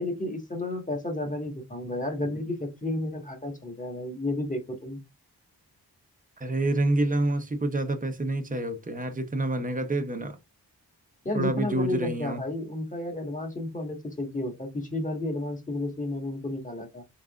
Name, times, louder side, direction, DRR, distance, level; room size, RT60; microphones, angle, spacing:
voice 1, 0.0-5.0 11.2-17.0, left 1 dB, 20° left, 1.5 m, -32 dB
voice 2, 6.4-10.4 11.3-12.4, right 2 dB, 20° right, 0.8 m, -28 dB
4.0 x 3.7 x 2.4 m
wide cardioid pair, 75°, 40 cm